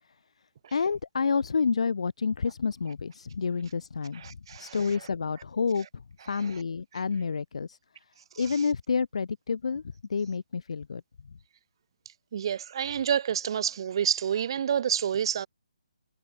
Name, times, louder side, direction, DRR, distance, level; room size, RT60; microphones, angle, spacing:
voice 1, 0.7-4.2 4.6-7.8 8.4-9.8 10.1-11.0, left 5 dB, 65° left, 1.6 m, -29 dB
voice 2, 4.1-5.1 6.3-6.6 8.3-8.6 12.3-15.5, right 8 dB, 45° right, 1.5 m, -29 dB
hypercardioid pair, 155°, 3 cm